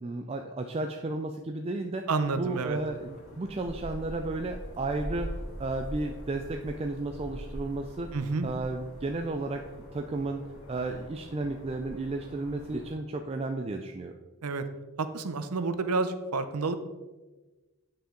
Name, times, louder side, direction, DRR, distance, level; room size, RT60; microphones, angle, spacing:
voice 1, 0.0-2.1 2.4-5.3 5.6-8.1 8.4-9.6 9.9-10.4 10.7-14.2, right 2 dB, 25° right, 4 dB, 0.3 m, -33 dB
voice 2, 2.1-2.8 8.1-8.5 14.4-14.6 15.0-16.8, right 3 dB, 85° right, 10 dB, 0.7 m, -29 dB
sound 1, 2.2-12.9, equal, 60° left, 1.9 m, -43 dB
8.8 x 5.6 x 3.8 m, 1.2 s
head